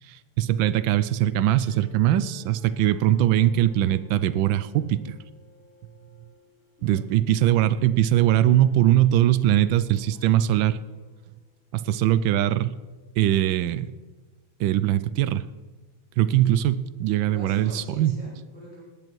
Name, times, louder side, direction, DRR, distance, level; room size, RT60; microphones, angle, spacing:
voice 1, 0.1-5.1 6.8-10.8 11.7-12.7 13.2-13.9 14.6-15.4 16.2-18.1, right 12 dB, 75° right, 16 dB, 1.3 m, -21 dB
sound 1, 1.5-11.7, equal, 5° left, 4.9 m, -57 dB
voice 2, 6.8-7.1 16.3-16.6 17.2-18.8, right 1 dB, 30° left, -8 dB, 5.2 m, -44 dB
18.5 x 10.5 x 4.6 m, 1.3 s
omnidirectional pair, 2.2 m